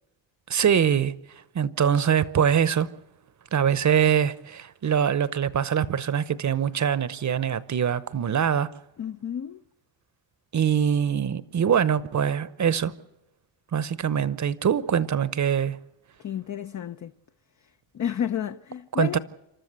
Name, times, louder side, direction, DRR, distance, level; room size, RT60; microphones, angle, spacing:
voice 1, 0.5-1.1 1.5-2.9 3.5-8.7 10.5-12.9 13.7-15.8 18.9-19.2, right 8 dB, 35° right, 0.9 m, -23 dB
voice 2, 9.0-9.6 16.2-17.1 17.9-19.2, left 9 dB, 40° left, 0.7 m, -31 dB
28.0 x 12.5 x 8.1 m
cardioid pair, 110°, 47 cm